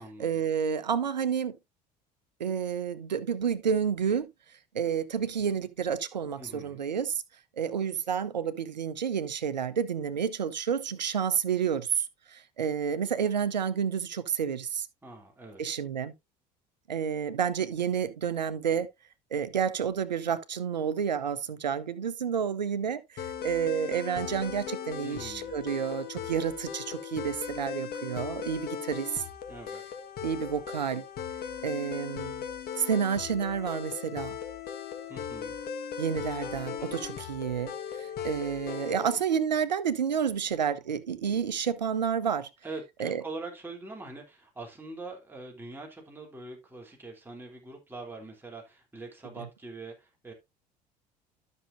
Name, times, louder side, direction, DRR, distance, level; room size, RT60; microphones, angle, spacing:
voice 1, 0.2-1.6 2.4-4.3 4.7-7.2 7.6-14.9 15.6-16.1 16.9-18.9 19.3-29.2 30.2-31.0 31.6-32.4 32.8-34.4 36.0-42.5 43.0-43.2, right 7 dB, 85° right, 0.7 m, -30 dB
voice 2, 6.4-6.8 15.0-15.6 25.0-25.5 29.5-29.8 35.1-35.6 42.6-50.3, right 2 dB, 10° right, 3.1 m, -43 dB
sound 1, 23.2-39.2, left 7 dB, 45° left, 1.5 m, -38 dB
12.5 x 6.3 x 2.6 m
figure-of-eight pair, 65°, 21 cm